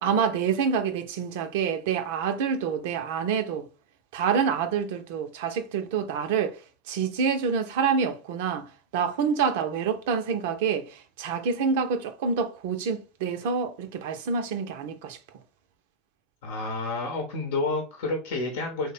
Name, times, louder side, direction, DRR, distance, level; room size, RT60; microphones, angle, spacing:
voice 1, 0.0-3.7 4.1-6.6 6.9-8.7 8.9-15.2, right 6 dB, 75° right, 0.5 m, -27 dB
voice 2, 16.4-18.9, left 3 dB, 75° left, 0.8 m, -30 dB
3.2 x 2.1 x 4.1 m
hypercardioid pair, 80°, 0 cm